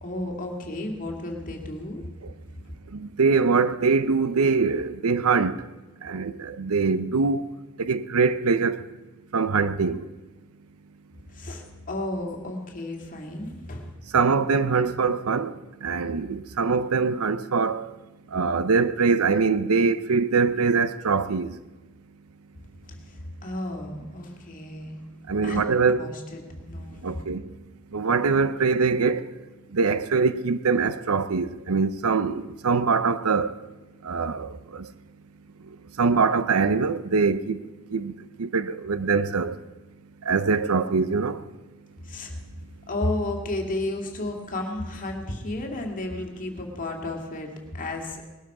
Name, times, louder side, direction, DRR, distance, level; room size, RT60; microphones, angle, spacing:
voice 1, 0.0-2.0 11.3-13.9 22.8-23.0 23.4-24.9 25.4-27.0 42.0-42.3 42.9-48.2, left 2 dB, 40° left, 2.2 m, -32 dB
voice 2, 2.9-5.6 6.0-7.5 7.8-8.8 9.3-10.0 14.1-15.5 15.8-17.9 18.3-21.5 25.3-26.1 27.0-27.4 27.9-29.2 29.7-33.5 34.0-34.9 36.0-37.6 37.9-38.1 38.4-39.5 40.3-41.4, right 4 dB, 90° right, 0.7 m, -23 dB
20.0 x 12.0 x 4.9 m
head